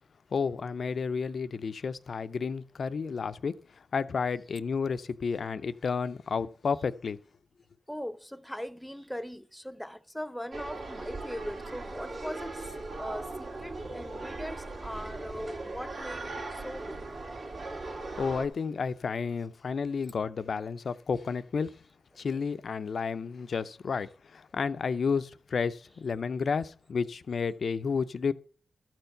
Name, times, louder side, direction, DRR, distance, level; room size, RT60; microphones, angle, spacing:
voice 1, 0.3-7.2 18.2-21.8 22.2-28.3, left 5 dB, 65° left, 0.5 m, -31 dB
voice 2, 7.9-17.0, equal, 5° left, 0.6 m, -40 dB
sound 1, 10.5-18.5, right 2 dB, 60° right, 1.9 m, -39 dB
12.5 x 4.5 x 6.6 m
cardioid pair, 80°, 0 cm